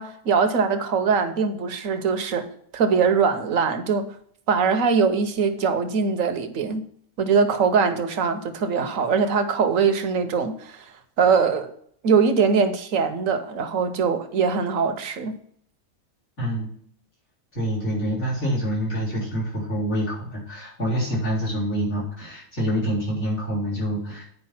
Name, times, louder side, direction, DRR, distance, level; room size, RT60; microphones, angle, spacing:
voice 1, 0.0-2.5 2.7-4.0 4.5-6.8 7.2-11.7 12.0-15.4, right 5 dB, 70° right, 1.3 m, -22 dB
voice 2, 16.4-16.8 17.5-24.2, equal, 70° left, 4.3 m, -26 dB
9.4 x 5.2 x 5.7 m
omnidirectional pair, 1.4 m